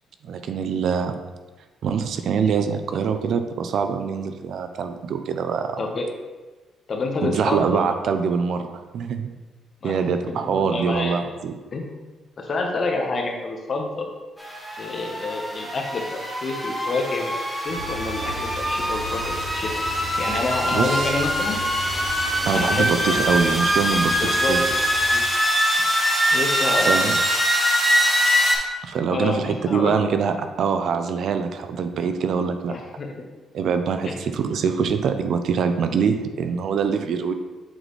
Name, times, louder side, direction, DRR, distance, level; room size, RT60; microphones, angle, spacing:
voice 1, 0.2-1.1 1.8-5.8 7.2-9.3 9.8-11.5 20.7-21.1 22.5-24.6 26.9-27.1 28.8-32.7 33.5-37.3, right 6 dB, 65° right, 8 dB, 0.5 m, -24 dB
voice 2, 6.9-7.9 9.8-11.2 11.7-12.0 12.4-14.1 14.8-19.7 20.2-21.6 22.5-23.5 24.2-24.6 25.1-25.2 26.3-26.9 29.1-30.0 32.7-33.3 34.0-34.1, left 3 dB, 50° left, 2 dB, 1.1 m, -28 dB
sound 1, 14.4-28.6, equal, 5° right, 1.6 m, -23 dB
sound 2, 17.7-25.1, equal, 35° right, 2.1 m, -36 dB
7.8 x 4.1 x 3.2 m, 1.2 s
cardioid pair, 90°, 0 cm